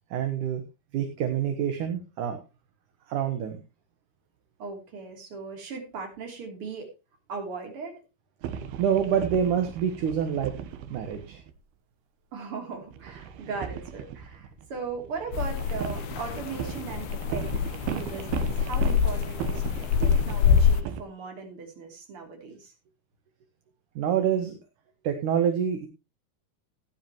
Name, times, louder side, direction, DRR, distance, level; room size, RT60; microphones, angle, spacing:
voice 1, 0.1-0.6 0.9-2.4 3.1-3.6 8.8-10.5 10.9-11.4 24.0-24.5 25.0-25.9, right 8 dB, 65° right, 6 dB, 2.5 m, -26 dB
voice 2, 4.6-6.9 7.3-8.0 12.3-17.5 17.9-19.6 20.0-22.7, right 4 dB, 35° right, 3 dB, 3.7 m, -38 dB
sound 1, 8.4-11.6 12.9-21.0, right 9 dB, 85° right, 3.1 m, -37 dB
sound 2, 15.3-20.8, left 7 dB, 80° left, 2.6 m, -25 dB
16.0 x 10.0 x 3.0 m, 0.27 s
omnidirectional pair, 4.4 m